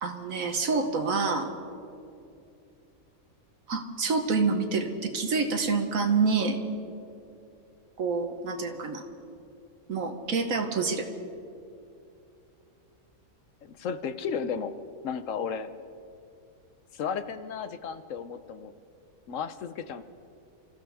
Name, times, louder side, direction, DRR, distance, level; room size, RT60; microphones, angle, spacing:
voice 1, 0.0-1.5 3.7-6.6 8.0-9.0 9.9-11.1, right 4 dB, 70° right, 5 dB, 1.5 m, -27 dB
voice 2, 13.6-14.8 15.0-15.7 16.9-18.7 19.3-20.0, left 6 dB, 65° left, 11 dB, 1.0 m, -34 dB
28.0 x 14.5 x 3.5 m, 2.6 s
omnidirectional pair, 1.5 m